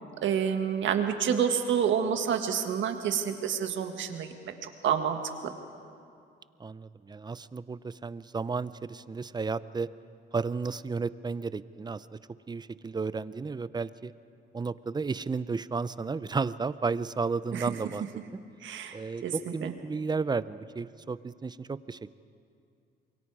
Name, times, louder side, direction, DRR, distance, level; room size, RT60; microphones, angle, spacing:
voice 1, 0.2-4.3 4.6-5.2 5.4-5.5 17.5-17.7 18.6-19.0 19.2-19.3 19.6-19.7, right 8 dB, 70° right, 6 dB, 1.7 m, -28 dB
voice 2, 6.6-9.9 10.3-12.1 12.5-14.1 14.5-18.0 18.9-22.1, right 4 dB, 20° right, 16 dB, 0.5 m, -33 dB
27.5 x 22.5 x 4.8 m, 2.4 s
cardioid pair, 90°, 20 cm